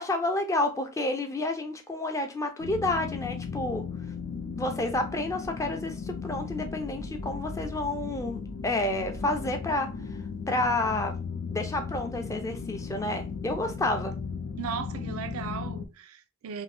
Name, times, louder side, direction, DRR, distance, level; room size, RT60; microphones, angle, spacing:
voice 1, 0.0-3.8 4.5-9.9 10.5-11.1 11.5-14.1, left 2 dB, 15° left, 0.4 m, -30 dB
sound 1, 2.6-15.9, left 5 dB, 90° left, 0.5 m, -36 dB
voice 2, 14.6-16.6, right 7 dB, 80° right, 0.4 m, -36 dB
2.6 x 2.5 x 3.2 m
head